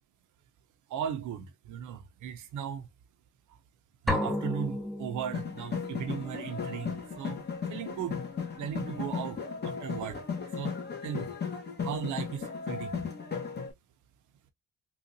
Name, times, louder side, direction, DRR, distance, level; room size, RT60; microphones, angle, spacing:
voice 1, 0.9-2.9 4.0-8.2 8.6-9.4 9.6-10.2 10.6-10.7 11.0-11.3 11.8-13.1, right 8 dB, 80° right, 0.7 m, -37 dB
sound 1, 4.1-5.9, left 1 dB, ahead, 0.7 m, -32 dB
sound 2, 5.3-13.7, left 6 dB, 35° left, 1.2 m, -36 dB
3.9 x 2.5 x 2.6 m
cardioid pair, 90°, 30 cm